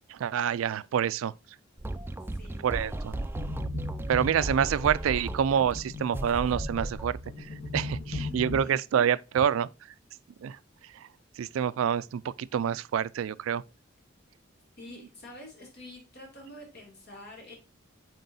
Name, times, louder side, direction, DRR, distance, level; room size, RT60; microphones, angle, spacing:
voice 1, 0.1-1.3 2.6-3.2 4.1-9.7 10.4-10.6 11.4-13.6, right 8 dB, 85° right, 0.3 m, -27 dB
sound 1, 1.8-7.1, right 1 dB, 10° right, 0.4 m, -36 dB
voice 2, 2.3-2.6 8.2-8.7 14.8-17.5, left 1 dB, 55° left, 2.7 m, -47 dB
sound 2, 3.3-8.6, left 2 dB, 80° left, 2.8 m, -37 dB
7.8 x 4.5 x 2.6 m
head